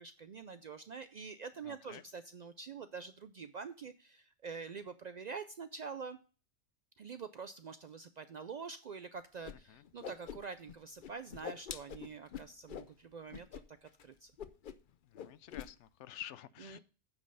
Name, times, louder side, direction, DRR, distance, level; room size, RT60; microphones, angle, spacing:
voice 1, 0.0-6.2 7.0-14.3 16.6-16.8, right 5 dB, 60° right, 0.4 m, -46 dB
voice 2, 1.6-2.1 9.7-9.8 15.0-16.8, left 11 dB, 85° left, 0.9 m, -50 dB
Whoosh swoosh swish, 9.4-9.5 9.8-10.7 11.0-12.9 13.3-13.6 13.9-14.0 14.4-14.9 15.1-15.7, left 8 dB, 55° left, 0.7 m, -45 dB
9.3 x 5.3 x 5.5 m
omnidirectional pair, 1.2 m